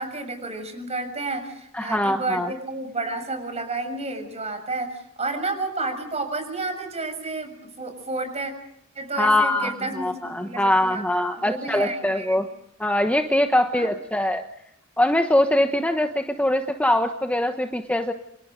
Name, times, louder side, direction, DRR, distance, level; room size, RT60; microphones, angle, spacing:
voice 1, 0.0-8.5 8.9-11.0 11.4-12.4 13.7-13.9, right 3 dB, 30° right, 7 dB, 6.7 m, -31 dB
voice 2, 1.7-2.5 9.2-9.7 10.0-12.5 12.8-14.4 15.0-18.1, left 1 dB, 5° left, 5 dB, 1.2 m, -22 dB
28.5 x 27.5 x 5.3 m, 0.73 s
head